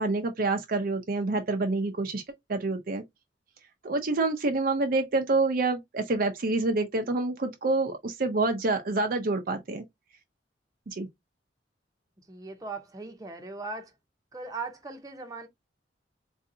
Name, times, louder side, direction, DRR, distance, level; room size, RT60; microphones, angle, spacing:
voice 1, 0.0-2.2 2.5-3.0 3.8-9.8 10.9-11.1, right 3 dB, 55° right, 0.6 m, -27 dB
voice 2, 12.3-13.9 14.3-15.5, right 3 dB, 20° right, 0.8 m, -39 dB
3.9 x 2.7 x 2.6 m
head